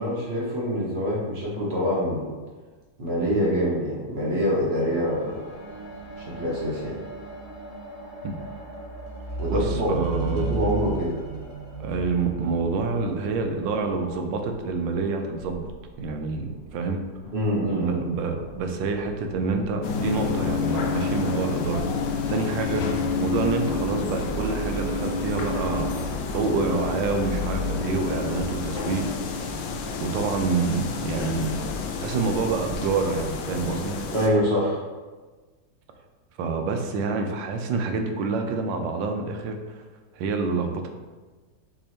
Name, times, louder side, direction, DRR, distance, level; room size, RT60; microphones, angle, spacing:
voice 1, 0.0-2.3 3.0-5.4 6.2-7.0 9.4-9.9 10.2-11.1 17.3-18.0 34.1-34.8, equal, 45° right, -4 dB, 1.0 m, -25 dB
sound 1, 4.6-14.2 15.0-15.1, right 3 dB, 25° left, 1.1 m, -35 dB
voice 2, 9.5-10.6 11.8-15.6 16.0-17.0 17.7-21.8 22.3-25.9 26.3-29.1 30.0-31.5 32.0-34.0 36.4-39.8 40.1-40.9, right 4 dB, 90° right, 4 dB, 1.3 m, -27 dB
sound 2, 14.1-30.5, equal, 65° left, 0.5 m, -39 dB
sound 3, 19.8-34.3, left 5 dB, 85° left, 1.3 m, -29 dB
6.3 x 2.8 x 2.8 m, 1.3 s
omnidirectional pair, 2.0 m